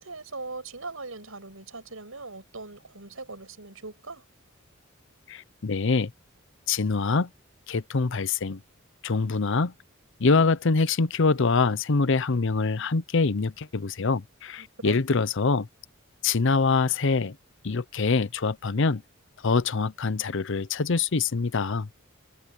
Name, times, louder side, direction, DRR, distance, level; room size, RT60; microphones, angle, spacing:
voice 1, 0.0-4.2 14.6-15.0, right 3 dB, 85° right, 6.1 m, -40 dB
voice 2, 5.3-6.1 6.7-7.3 7.7-8.6 9.0-9.7 10.2-15.7 16.2-17.4 17.6-19.0 19.4-21.9, left 4 dB, 65° left, 0.7 m, -24 dB
head